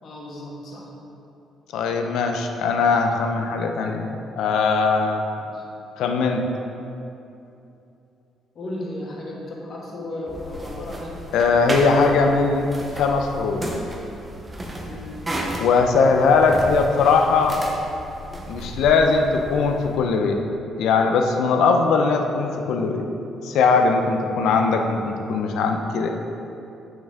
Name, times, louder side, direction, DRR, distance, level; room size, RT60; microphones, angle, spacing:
voice 1, 0.0-0.9 5.3-5.6 8.5-11.2 14.8-15.2, left 1 dB, 40° left, -4 dB, 1.4 m, -35 dB
voice 2, 1.7-5.2 6.0-6.5 11.3-12.7 13.0-13.6 15.6-17.6 18.5-20.4 20.8-23.0 23.4-26.1, left 4 dB, 70° left, 4 dB, 0.7 m, -20 dB
sound 1, 10.3-20.0, equal, 15° right, 0.7 m, -33 dB
8.4 x 6.2 x 3.6 m, 2.8 s
cardioid pair, 175°, 0 cm